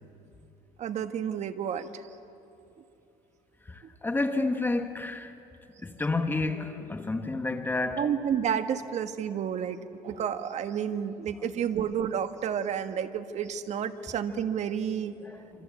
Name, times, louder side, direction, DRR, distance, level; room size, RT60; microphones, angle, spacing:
voice 1, 0.8-2.0 8.0-15.1, right 8 dB, 45° right, 1.5 m, -30 dB
voice 2, 3.6-5.3 5.8-8.1 15.2-15.6, left 2 dB, 10° left, 1.3 m, -30 dB
27.0 x 26.5 x 8.3 m
cardioid pair, 135°, 16 cm